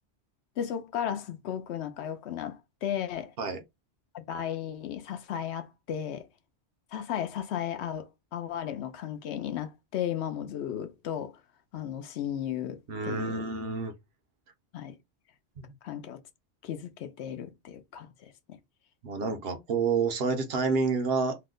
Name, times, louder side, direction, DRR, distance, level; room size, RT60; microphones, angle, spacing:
voice 1, 0.6-3.3 4.1-6.3 6.9-11.4 11.7-13.4 14.7-15.0 15.8-16.2 16.6-18.6, left 9 dB, 80° left, 0.9 m, -35 dB
voice 2, 12.9-13.9 15.6-15.7 19.0-21.4, right 4 dB, 65° right, 0.8 m, -29 dB
2.8 x 2.1 x 3.6 m
omnidirectional pair, 1.1 m